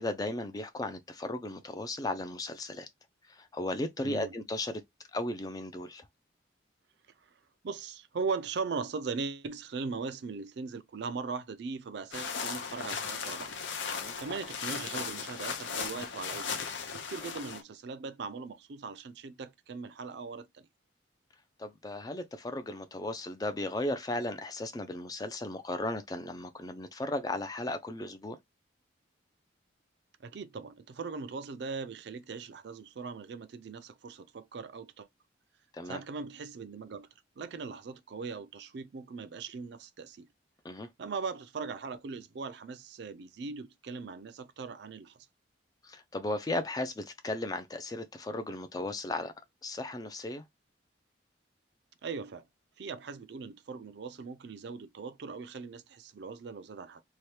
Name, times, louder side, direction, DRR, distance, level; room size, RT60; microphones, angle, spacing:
voice 1, 0.0-2.9 3.3-4.8 5.1-6.1 13.9-14.1 21.6-28.4 35.7-36.0 40.6-40.9 45.8-49.3 49.6-50.4, left 2 dB, 20° left, 0.3 m, -36 dB
voice 2, 4.0-4.3 7.6-13.5 14.2-16.6 16.9-20.5 30.2-35.1 35.9-37.1 37.4-40.3 41.0-45.2 52.0-52.5 52.8-57.0, right 4 dB, 60° right, 0.4 m, -39 dB
sound 1, 12.1-17.6, left 6 dB, 75° left, 0.6 m, -37 dB
2.8 x 2.2 x 3.2 m
head